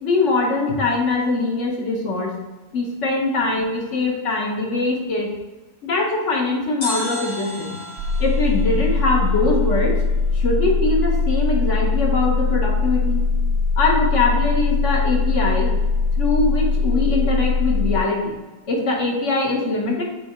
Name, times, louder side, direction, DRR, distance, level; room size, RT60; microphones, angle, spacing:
voice 1, 0.0-2.3 2.7-5.3 5.8-7.8 8.2-9.9 10.3-13.2 13.8-15.7 16.2-18.3 18.7-20.0, left 3 dB, 55° left, 0 dB, 1.4 m, -22 dB
sound 1, 6.8-9.9 10.1-10.2, left 2 dB, 90° left, 2.9 m, -34 dB
sound 2, 8.0-18.0, left 4 dB, 65° right, 0.8 m, -21 dB
6.8 x 3.5 x 4.3 m, 1.2 s
omnidirectional pair, 1.5 m